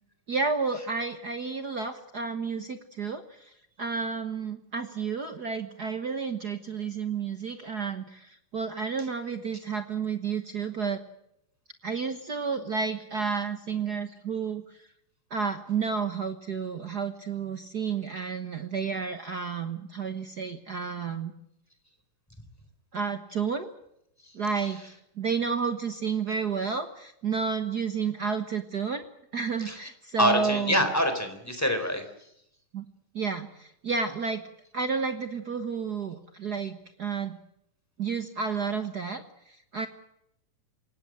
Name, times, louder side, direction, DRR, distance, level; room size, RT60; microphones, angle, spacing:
voice 1, 0.3-3.5 3.8-11.0 11.8-14.6 15.3-21.3 22.9-23.7 24.3-29.0 29.3-30.8 32.7-32.8 33.1-34.4 34.7-37.4 38.0-39.9, right 5 dB, 55° right, 8 dB, 1.1 m, -31 dB
voice 2, 24.2-24.7 29.6-29.8 30.2-32.3, equal, 5° left, 8 dB, 3.8 m, -26 dB
28.0 x 17.0 x 7.6 m, 0.77 s
omnidirectional pair, 3.7 m